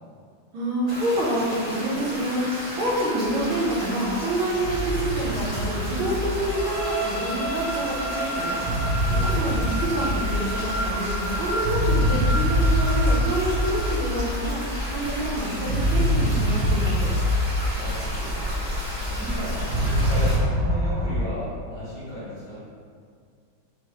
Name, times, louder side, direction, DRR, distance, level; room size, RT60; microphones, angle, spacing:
voice 1, 0.5-2.5 2.8-8.6 9.4-14.6 14.9-17.1, right 1 dB, 90° right, -5 dB, 1.7 m, -27 dB
sound 1, 0.9-20.4, equal, 20° right, 1.4 m, -33 dB
sound 2, 3.2-21.2, equal, 65° right, 1.1 m, -26 dB
sound 3, 6.5-14.3, right 1 dB, 40° right, 1.5 m, -32 dB
voice 2, 9.0-9.5 17.7-18.4 18.9-22.6, equal, 60° left, -10 dB, 1.7 m, -35 dB
4.4 x 3.1 x 3.0 m, 2.1 s
omnidirectional pair, 2.2 m